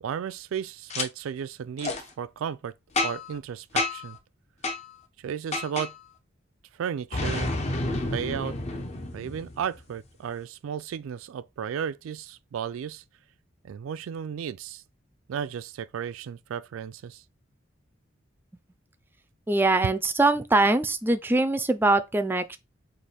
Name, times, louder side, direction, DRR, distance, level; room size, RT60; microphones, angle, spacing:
voice 1, 0.0-2.7 3.0-4.2 5.2-5.9 6.8-7.6 8.1-8.6 9.1-13.0 13.6-14.8 15.3-17.2, right 8 dB, 90° right, 0.3 m, -34 dB
Boom, 0.9-1.1 1.8-2.0 3.0-3.4 3.8-4.1 4.6-4.8 5.5-5.9 7.1-9.8, left 2 dB, 35° left, 0.8 m, -29 dB
voice 2, 19.5-22.6, right 2 dB, 10° right, 0.4 m, -23 dB
4.8 x 2.5 x 4.1 m
head